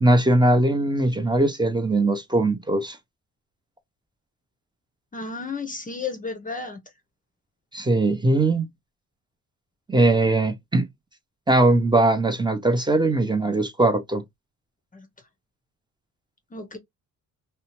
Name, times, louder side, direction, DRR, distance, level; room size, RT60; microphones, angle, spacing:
voice 1, 0.0-3.0 7.7-8.6 9.9-10.9 11.5-14.2, right 2 dB, 15° right, 0.7 m, -20 dB
voice 2, 5.1-6.8 14.9-15.1 16.5-16.8, left 4 dB, 25° left, 0.6 m, -33 dB
2.7 x 2.1 x 2.9 m
cardioid pair, 85°, 33 cm